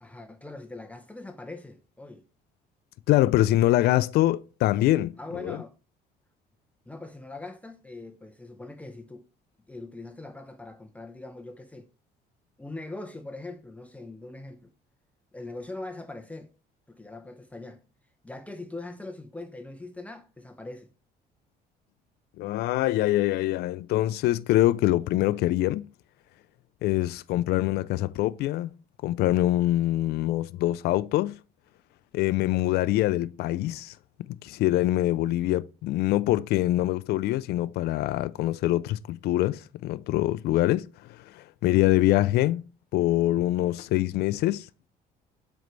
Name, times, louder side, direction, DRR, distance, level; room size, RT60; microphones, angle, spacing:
voice 1, 0.0-2.3 5.2-5.7 6.9-9.3 9.7-11.9 12.6-14.7 15.3-16.5 16.9-17.8 18.2-20.9, left 2 dB, 10° left, 0.7 m, -41 dB
voice 2, 3.1-5.2 5.4-5.6 22.4-25.9 26.8-28.7 29.0-31.4 32.1-33.9 34.4-42.7 42.9-44.7, left 15 dB, 70° left, 0.4 m, -24 dB
7.3 x 4.5 x 3.1 m
cardioid pair, 110°, 17 cm